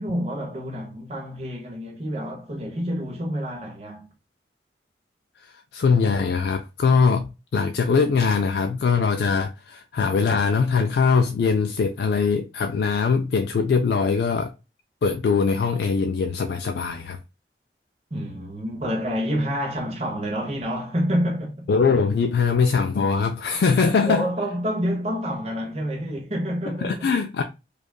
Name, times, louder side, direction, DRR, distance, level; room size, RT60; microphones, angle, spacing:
voice 1, 0.0-4.0 18.1-21.7 23.5-23.6 24.0-27.1, equal, 35° right, 0.9 m, -28 dB
voice 2, 5.7-14.5 15.0-17.2 21.7-24.3 26.8-27.4, left 5 dB, 65° left, 0.3 m, -22 dB
5.0 x 2.4 x 2.2 m
head